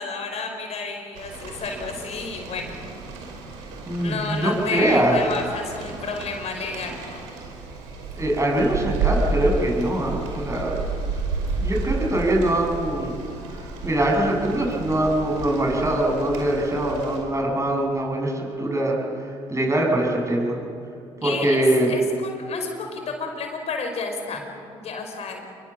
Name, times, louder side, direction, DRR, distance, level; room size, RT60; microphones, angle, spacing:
voice 1, 0.0-2.8 4.0-7.2 21.2-25.4, left 4 dB, 55° left, 4 dB, 5.0 m, -31 dB
Rain, 1.2-17.2, right 4 dB, 85° right, 5.3 m, -31 dB
voice 2, 3.9-5.2 8.1-10.8 11.6-13.2 13.5-20.6 21.2-21.9, right 1 dB, 25° right, 0 dB, 7.4 m, -23 dB
26.5 x 22.5 x 7.4 m, 2.4 s
supercardioid pair, 65°, 13 cm